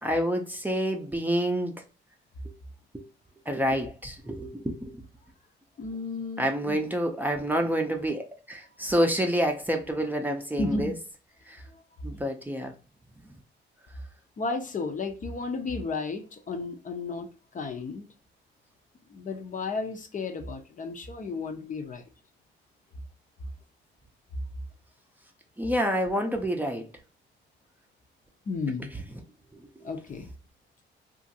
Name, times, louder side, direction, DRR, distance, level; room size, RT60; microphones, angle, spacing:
voice 1, 0.0-1.8 2.9-3.0 3.5-4.9 6.4-10.9 11.5-11.6 12.0-12.7 25.6-26.9, equal, 10° right, 0.6 m, -28 dB
voice 2, 5.8-6.8 10.6-10.9 12.1-12.2 14.4-17.3 17.5-18.0 19.1-22.0 28.5-28.9 29.8-30.3, left 3 dB, 40° left, 0.6 m, -33 dB
2.8 x 2.5 x 2.6 m
cardioid pair, 90°, 20 cm